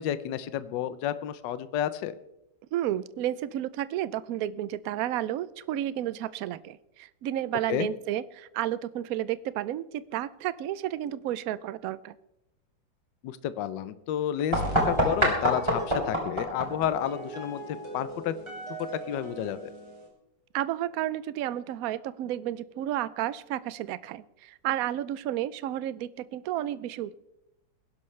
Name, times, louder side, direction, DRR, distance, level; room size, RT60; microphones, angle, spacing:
voice 1, 0.0-2.1 7.7-7.9 13.2-17.6 17.9-18.3 19.1-19.7, left 11 dB, 75° left, 14 dB, 1.3 m, -31 dB
voice 2, 2.7-12.1 20.5-27.2, right 12 dB, 70° right, 16 dB, 0.8 m, -32 dB
sound 1, 14.5-20.1, right 1 dB, 15° right, 3.2 m, -30 dB
21.0 x 11.5 x 3.2 m, 0.85 s
omnidirectional pair, 2.0 m